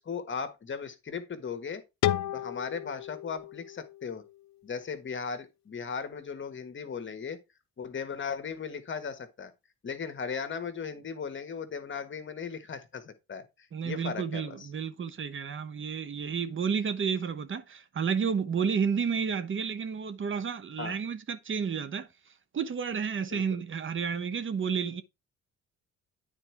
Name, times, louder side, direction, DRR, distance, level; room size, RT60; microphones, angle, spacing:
voice 1, 0.0-1.8 2.3-4.2 4.6-7.4 7.8-9.5 9.8-14.7 20.8-21.0 23.3-23.6, left 6 dB, 40° left, 1.4 m, -37 dB
sound 1, 2.0-4.9, left 13 dB, 65° left, 0.5 m, -33 dB
voice 2, 13.7-22.1 22.5-25.0, right 6 dB, 40° right, 0.9 m, -31 dB
9.0 x 4.4 x 4.6 m
cardioid pair, 90°, 30 cm